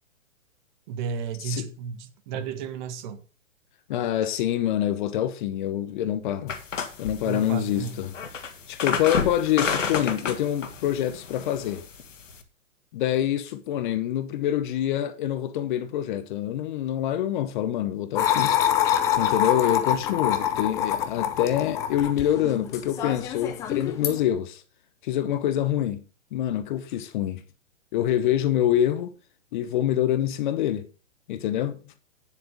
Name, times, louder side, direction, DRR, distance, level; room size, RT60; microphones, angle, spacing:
voice 1, 0.9-3.2 7.2-8.0, right 6 dB, 35° right, 1.6 m, -33 dB
voice 2, 3.9-6.6 7.0-11.8 12.9-18.6 19.2-24.6 25.0-26.0 26.3-27.4 27.9-29.1 29.5-30.9 31.3-31.9, left 11 dB, 40° left, 1.0 m, -26 dB
sound 1, 6.5-12.4, left 6 dB, 75° left, 2.0 m, -31 dB
sound 2, 18.2-24.2, left 10 dB, 10° left, 0.4 m, -26 dB
9.8 x 7.6 x 5.1 m
hypercardioid pair, 130°, 38 cm